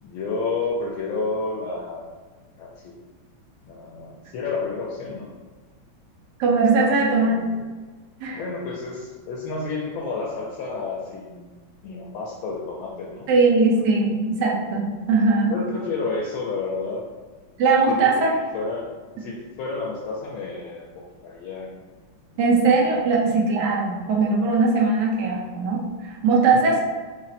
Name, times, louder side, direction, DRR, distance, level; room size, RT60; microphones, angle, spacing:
voice 1, 0.0-2.1 2.6-2.9 3.6-5.3 6.8-7.6 8.3-11.5 11.8-13.3 13.7-13.8 15.5-17.0 17.9-18.9 19.1-21.7 22.3-22.4 26.5-26.8, left 3 dB, 80° left, -2 dB, 1.3 m, -31 dB
voice 2, 6.4-7.4 8.2-8.4 13.3-15.5 17.6-18.3 22.4-26.8, right 3 dB, 65° right, -2 dB, 1.2 m, -20 dB
4.1 x 2.1 x 4.0 m, 1.4 s
omnidirectional pair, 2.3 m